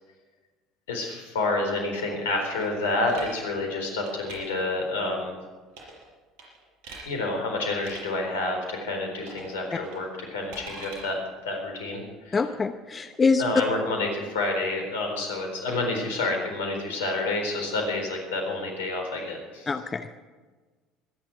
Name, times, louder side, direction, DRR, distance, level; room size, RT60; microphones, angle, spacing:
voice 1, 0.9-5.4 7.0-12.4 13.4-19.7, left 2 dB, 75° left, 3 dB, 4.2 m, -29 dB
sound 1, 2.6-3.4 3.9-4.4 5.7-6.1 6.4-7.1 7.7-8.0 9.2-9.5 9.8-11.0, right 3 dB, 65° right, 5.9 m, -43 dB
voice 2, 12.3-13.4 19.7-20.1, left 4 dB, 30° left, 9 dB, 0.8 m, -25 dB
24.5 x 10.5 x 4.8 m, 1.3 s
hypercardioid pair, 65°, 0 cm